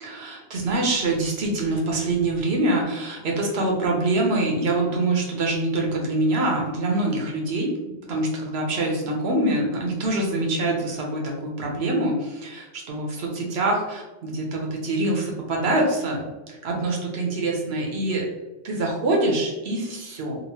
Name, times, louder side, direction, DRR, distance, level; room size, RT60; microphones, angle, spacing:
voice 1, 0.0-7.7 8.1-18.3 18.6-20.4, right 2 dB, 75° right, -1 dB, 1.0 m, -25 dB
2.9 x 2.5 x 2.7 m, 1.1 s
omnidirectional pair, 1.1 m